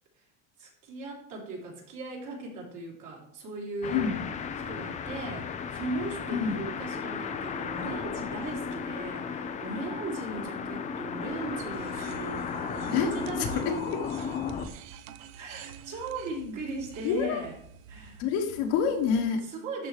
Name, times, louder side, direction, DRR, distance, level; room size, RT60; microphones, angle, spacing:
voice 1, 0.6-4.1 4.6-14.3 15.3-17.5 17.9-18.2 19.5-19.9, right 2 dB, 50° right, -2 dB, 3.2 m, -38 dB
sound 1, 3.8-14.7, left 6 dB, 20° left, 0.4 m, -35 dB
voice 2, 3.9-4.2 6.3-6.6 12.9-14.1 16.4-16.6 17.0-17.4 18.2-19.5, left 6 dB, 60° left, 3 dB, 1.3 m, -28 dB
sound 2, 7.1-9.4 10.2-12.0, right 3 dB, 35° right, 1.7 m, -51 dB
sound 3, 11.7-19.2, right 7 dB, 90° right, 0.7 m, -48 dB
12.5 x 4.5 x 3.2 m, 0.72 s
supercardioid pair, 145°, 40 cm